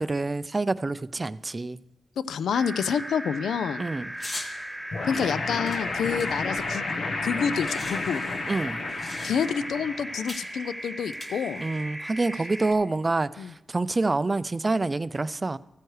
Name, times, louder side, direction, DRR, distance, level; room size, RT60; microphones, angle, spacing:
voice 1, 0.0-1.8 3.8-4.1 8.5-8.8 11.6-15.6, right 3 dB, 30° right, 17 dB, 0.3 m, -27 dB
voice 2, 2.3-3.8 5.1-6.9 7.2-8.2 9.2-11.6 13.4-13.5, left 7 dB, 85° left, 16 dB, 0.3 m, -28 dB
sound 1, 2.5-12.7, right 1 dB, 5° right, 1.4 m, -37 dB
sound 2, 4.2-4.5 5.1-7.0 7.2-7.3 7.5-9.7 10.3-10.5 11.1-11.8, left 2 dB, 45° left, 1.6 m, -40 dB
sound 3, 4.9-10.3, left 3 dB, 70° left, 1.0 m, -32 dB
14.5 x 9.0 x 3.2 m, 0.93 s
cardioid pair, 65°, 0 cm